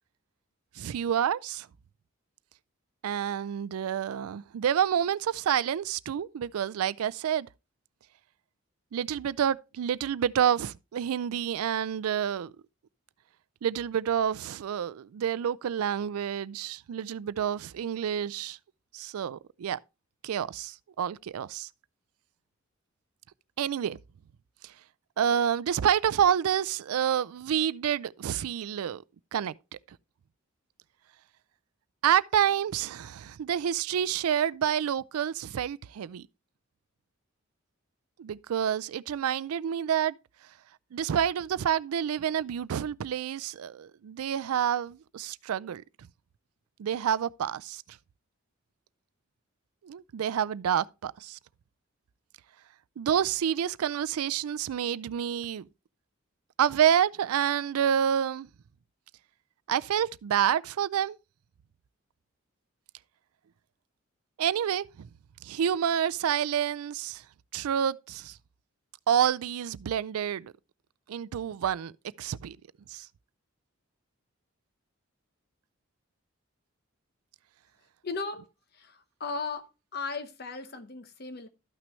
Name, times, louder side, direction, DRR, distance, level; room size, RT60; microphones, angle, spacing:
voice 1, 0.8-1.7 3.0-7.5 8.9-12.5 13.6-18.6 18.9-19.8 20.2-21.7 23.6-24.0 24.6-24.7 25.2-29.0 29.3-29.5 32.0-36.3 38.2-40.1 40.9-45.8 46.8-47.8 49.8-51.4 53.0-55.7 56.6-58.5 59.7-61.2 64.4-65.1 65.4-67.2 67.5-68.4 69.1-70.5 71.1-71.9 72.2-72.6 72.9-73.1, right 9 dB, 90° right, 0.4 m, -28 dB
voice 2, 78.0-78.5 78.7-81.5, left 4 dB, 45° left, 0.9 m, -36 dB
12.5 x 6.0 x 3.1 m
head